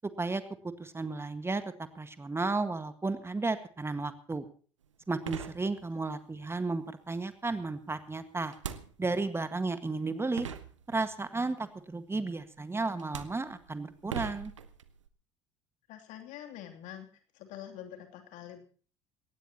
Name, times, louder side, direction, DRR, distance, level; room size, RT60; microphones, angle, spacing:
voice 1, 0.0-0.4 0.8-1.6 1.9-4.4 5.1-8.5 9.0-10.5 10.9-14.5, right 3 dB, 15° right, 10 dB, 1.7 m, -33 dB
sound 1, 4.8-4.9 5.2-6.2 8.5-9.4 10.1-10.2 10.4-11.3 12.4-12.6 13.0-15.1, right 8 dB, 80° right, 1.0 m, -41 dB
voice 2, 15.9-17.1 17.3-18.6, left 11 dB, 55° left, 4 dB, 2.9 m, -45 dB
21.5 x 18.0 x 3.0 m, 0.41 s
figure-of-eight pair, 60°, 15 cm